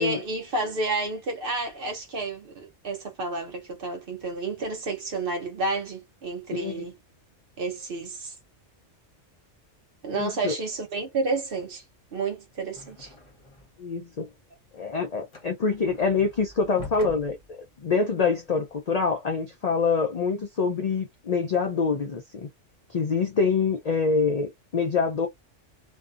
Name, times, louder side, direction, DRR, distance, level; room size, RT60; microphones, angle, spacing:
voice 1, 0.0-6.9 7.6-8.3 10.0-11.8 12.1-13.1, right 3 dB, 55° right, 0.7 m, -30 dB
voice 2, 6.5-6.8 10.1-10.6 13.8-14.3 14.7-22.5 22.9-25.3, left 5 dB, 60° left, 0.4 m, -25 dB
sound 1, 12.7-13.9 14.2-18.8, left 2 dB, 30° left, 0.7 m, -45 dB
2.6 x 2.1 x 2.4 m
omnidirectional pair, 1.3 m